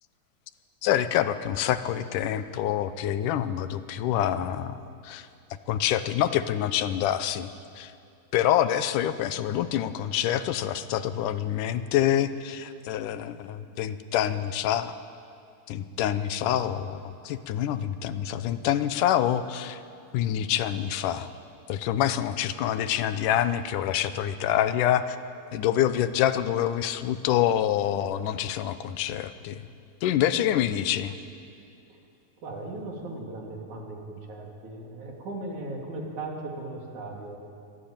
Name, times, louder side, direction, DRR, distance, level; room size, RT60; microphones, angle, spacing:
voice 1, 0.8-4.8 5.0-5.3 5.7-7.9 8.3-15.0 15.7-19.8 20.1-21.3 21.7-25.2 25.5-29.7 30.0-31.2, left 11 dB, 90° left, 12 dB, 2.4 m, -26 dB
voice 2, 32.4-37.4, right 2 dB, 70° right, -1 dB, 4.4 m, -37 dB
24.0 x 17.5 x 8.9 m, 2.5 s
omnidirectional pair, 3.6 m